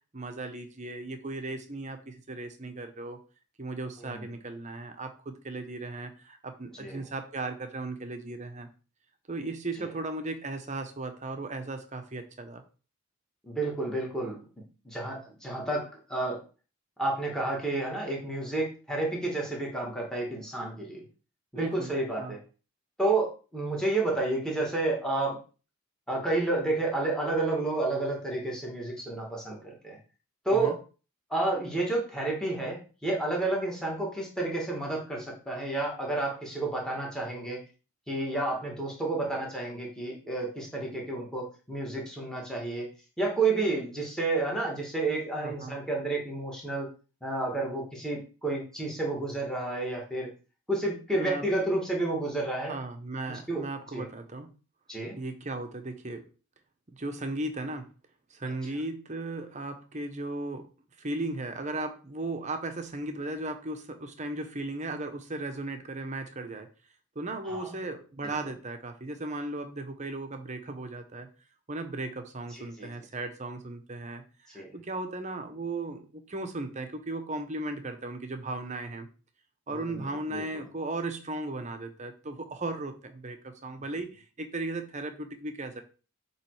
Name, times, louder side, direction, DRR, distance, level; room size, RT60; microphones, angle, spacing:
voice 1, 0.1-3.2 3.6-8.7 9.3-12.6 21.5-22.4 30.5-30.7 45.4-45.8 51.1-51.4 52.6-54.5 55.2-56.2 56.9-57.9 58.3-60.7 61.0-66.7 67.1-71.3 71.7-79.1 79.7-85.8, right 2 dB, 30° right, 7 dB, 0.8 m, -36 dB
voice 2, 4.0-4.4 6.8-7.1 9.8-9.9 13.4-14.4 14.8-16.4 17.0-21.0 21.5-22.4 23.0-25.4 26.1-30.0 30.4-30.8 31.3-37.6 38.1-42.9 43.2-46.9 47.2-50.3 50.7-52.8 53.3-53.7 53.9-54.1 54.9-55.2 67.4-67.8 68.2-68.3 72.5-72.9 74.5-74.7 79.9-80.5, right 2 dB, 5° left, -2 dB, 1.9 m, -30 dB
7.4 x 3.2 x 4.7 m, 0.35 s
head